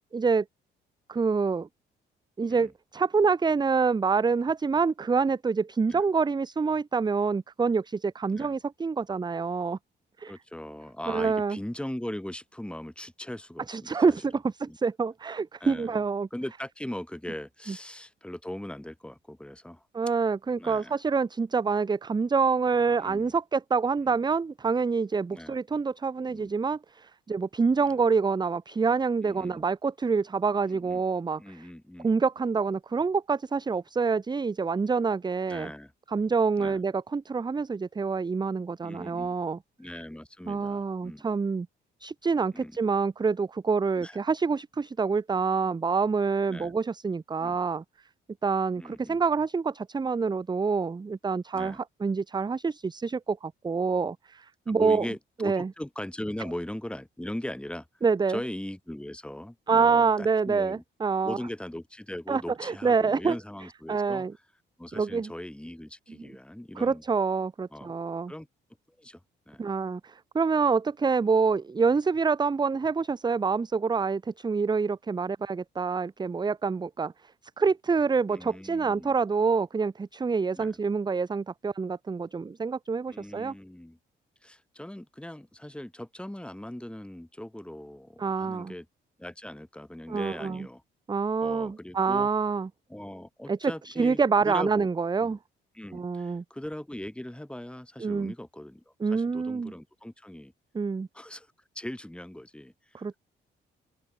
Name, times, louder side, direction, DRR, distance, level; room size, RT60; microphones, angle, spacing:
voice 1, 0.1-0.4 1.1-1.7 2.4-9.8 10.2-10.3 11.1-11.6 13.7-16.3 19.9-31.7 32.0-35.7 36.1-39.6 40.5-41.7 42.0-47.8 48.4-55.0 55.4-55.7 58.0-58.4 59.7-61.4 62.3-63.4 63.9-64.3 64.9-65.3 66.8-68.3 69.6-77.1 77.6-83.5 88.2-88.7 90.1-90.7 91.1-92.7 93.5-95.4 95.9-96.4 98.0-98.3 99.0-99.7 100.7-101.1 102.9-103.2, right 5 dB, 20° right, 0.7 m, -26 dB
voice 2, 10.3-14.2 14.7-14.8 15.6-16.0 16.3-19.9 20.6-21.0 23.0-23.4 24.0-24.2 25.3-25.6 26.3-26.5 27.8-28.0 29.2-29.6 30.7-31.0 31.4-32.1 35.5-35.9 36.6-36.8 38.8-39.4 39.8-41.3 42.5-42.8 44.0-44.2 46.5-46.7 47.4-47.6 48.8-49.2 51.5-51.8 54.7-57.9 58.3-60.8 61.2-64.3 64.8-67.0 67.7-68.0 68.3-68.5 69.0-69.2 69.5-69.6 78.3-79.2 80.6-80.7 83.1-84.0 84.4-88.9 89.2-90.8 91.4-92.3 92.9-94.9 95.2-95.4 95.8-98.8 99.1-100.5 101.1-101.5 101.8-103.2, left 1 dB, 5° left, 7.1 m, -39 dB
open air
cardioid pair, 90°, 20 cm